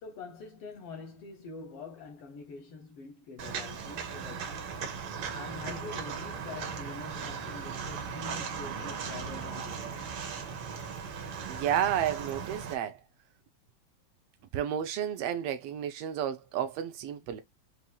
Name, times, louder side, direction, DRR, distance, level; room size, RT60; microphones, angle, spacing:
voice 1, 0.0-4.7 5.3-10.1, left 4 dB, 75° left, 1.3 m, -45 dB
Walk footsteps, 3.4-12.7, right 6 dB, 70° right, 2.4 m, -38 dB
voice 2, 11.5-13.0 14.5-17.4, right 10 dB, 90° right, 1.3 m, -31 dB
7.0 x 2.7 x 2.3 m
omnidirectional pair, 3.4 m